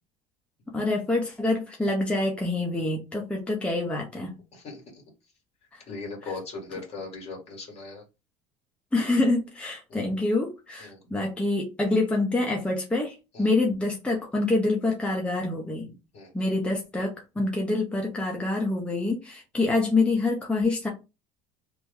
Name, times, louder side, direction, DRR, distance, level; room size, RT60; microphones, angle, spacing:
voice 1, 0.7-4.4 5.7-5.8 6.2-6.3 8.9-15.9 16.3-20.9, left 2 dB, 10° left, -1 dB, 0.7 m, -26 dB
voice 2, 4.5-5.0 5.9-8.0 9.9-10.0 10.8-11.0 13.3-13.5 16.1-16.6, left 3 dB, 45° left, 1 dB, 1.7 m, -39 dB
2.9 x 2.1 x 3.5 m, 0.28 s
supercardioid pair, 110°, 15 cm